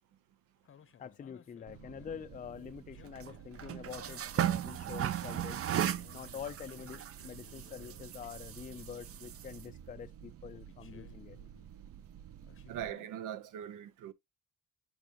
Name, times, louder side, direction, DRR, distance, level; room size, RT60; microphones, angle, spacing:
sound 1, 0.6-2.2 2.9-4.3 4.9-8.3 8.7-9.9 10.5-11.7 12.4-13.1, left 8 dB, 45° left, 0.8 m, -60 dB
voice 1, 1.0-5.7 6.1-11.4, left 7 dB, 25° left, 0.4 m, -46 dB
sound 2, 1.7-12.9, right 11 dB, 50° right, 0.6 m, -39 dB
voice 2, 12.7-14.1, right 10 dB, 85° right, 0.9 m, -41 dB
8.9 x 4.8 x 3.0 m
cardioid pair, 90°, 30 cm